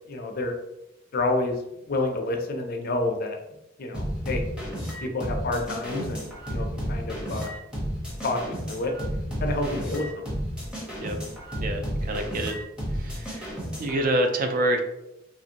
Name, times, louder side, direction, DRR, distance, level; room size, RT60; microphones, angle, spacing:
voice 1, 0.1-0.5 1.1-3.4 3.8-4.4 5.0-7.5 8.2-10.1, left 2 dB, 50° left, 4 dB, 0.5 m, -29 dB
sound 1, 3.9-14.1, equal, 5° right, 0.7 m, -32 dB
voice 2, 11.6-12.6 12.9-13.5 13.8-14.8, right 1 dB, 45° right, 5 dB, 0.4 m, -27 dB
2.8 x 2.5 x 2.7 m, 0.89 s
head